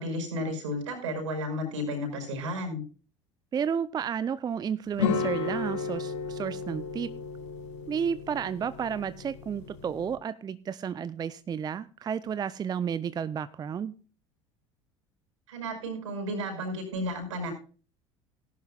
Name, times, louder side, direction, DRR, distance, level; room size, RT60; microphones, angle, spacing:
voice 1, 0.0-2.8 15.5-17.5, equal, 75° right, 4 dB, 5.6 m, -33 dB
voice 2, 3.5-7.1 7.9-13.9, right 7 dB, 25° right, 16 dB, 0.5 m, -32 dB
sound 1, 5.0-10.2, left 5 dB, 70° left, 1.7 m, -34 dB
18.0 x 11.0 x 2.3 m, 0.38 s
figure-of-eight pair, 65°, 16 cm